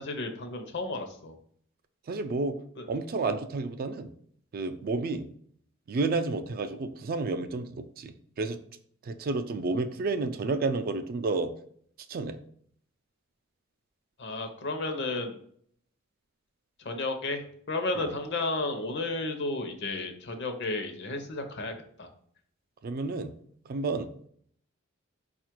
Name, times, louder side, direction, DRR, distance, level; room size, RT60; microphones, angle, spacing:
voice 1, 0.0-1.3 2.8-2.9 14.2-15.4 16.8-21.7 22.0-22.1, left 2 dB, 55° left, 5 dB, 0.7 m, -32 dB
voice 2, 2.1-2.6 2.9-4.1 4.5-5.3 5.9-8.6 9.0-11.5 12.1-12.4 17.9-18.1 22.8-23.3 23.7-24.1, right 3 dB, 45° right, 8 dB, 0.3 m, -31 dB
4.9 x 2.4 x 4.4 m, 0.62 s
head